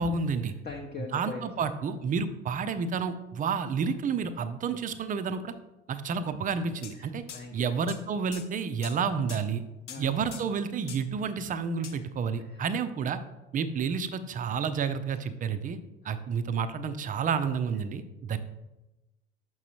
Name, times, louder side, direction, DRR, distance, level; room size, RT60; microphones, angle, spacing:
voice 1, 0.0-0.5 1.1-5.5 5.9-7.2 7.5-9.6 10.0-13.2 13.5-15.8 16.0-18.4, right 6 dB, 25° right, 10 dB, 0.4 m, -30 dB
voice 2, 0.6-1.7 7.0-7.7 9.9-10.2 12.5-12.6, left 4 dB, 25° left, 0 dB, 0.8 m, -41 dB
sound 1, 6.8-7.0 7.3-7.4 7.9-8.0 8.3-8.5 8.8-9.0 9.3-9.4 9.9-10.0 10.3-10.5 10.9-11.1 11.8-12.0, left 8 dB, 80° left, 0.6 m, -43 dB
6.1 x 5.9 x 2.9 m, 1.0 s
figure-of-eight pair, 60°, 35 cm